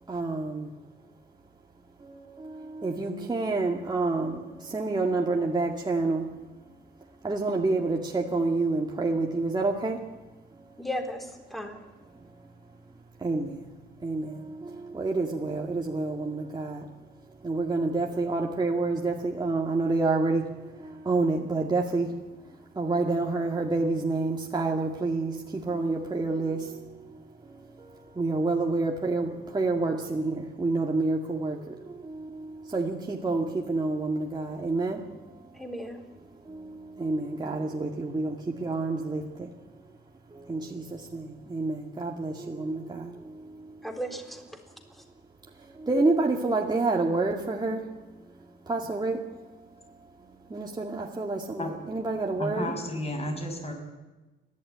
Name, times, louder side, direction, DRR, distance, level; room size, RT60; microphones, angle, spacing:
voice 1, 0.1-0.7 2.0-6.3 7.2-10.0 12.2-12.3 13.2-13.7 14.0-16.9 17.4-22.1 22.7-35.3 36.3-39.5 40.3-43.9 45.7-48.2 48.7-49.2 50.5-52.7, right 3 dB, 20° right, 0 dB, 2.2 m, -29 dB
voice 2, 10.8-11.8 35.5-36.0 43.8-44.4, equal, ahead, 5 dB, 3.7 m, -35 dB
voice 3, 52.3-53.7, left 1 dB, 30° left, 4 dB, 6.0 m, -33 dB
30.0 x 12.0 x 9.3 m, 1.1 s
cardioid pair, 90°, 20 cm